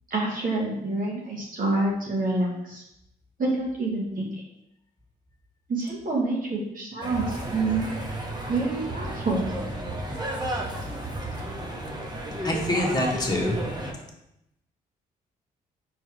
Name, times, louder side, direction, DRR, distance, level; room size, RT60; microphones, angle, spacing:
voice 1, 0.1-2.8 3.4-4.4 5.7-7.9 8.5-9.5, right 2 dB, 45° right, -3 dB, 1.7 m, -27 dB
sound 1, 7.0-13.9, right 1 dB, 20° right, 1.5 m, -32 dB
voice 2, 12.4-13.6, left 1 dB, 20° left, 0 dB, 1.8 m, -25 dB
4.5 x 4.3 x 4.9 m, 0.83 s
hypercardioid pair, 45°, 20 cm